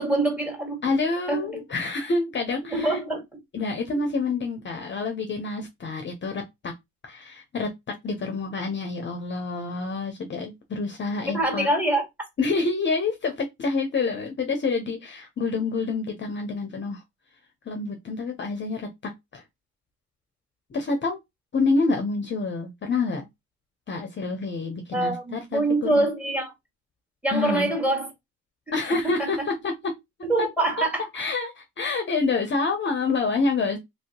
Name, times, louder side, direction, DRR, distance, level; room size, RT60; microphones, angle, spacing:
voice 1, 0.0-0.8 1.3-1.4 2.6-3.2 11.3-12.0 24.9-26.5 27.2-28.1 29.1-29.3 30.3-31.0, right 2 dB, 5° right, 1.7 m, -24 dB
voice 2, 0.8-3.0 3.5-6.7 7.0-11.7 12.4-17.0 17.7-19.4 20.7-21.2 21.5-23.3 23.9-26.0 27.3-27.7 28.7-30.0 30.4-30.5 30.8-30.9 31.1-33.8, left 3 dB, 40° left, 0.8 m, -27 dB
3.0 x 2.8 x 2.9 m
cardioid pair, 90°, 30 cm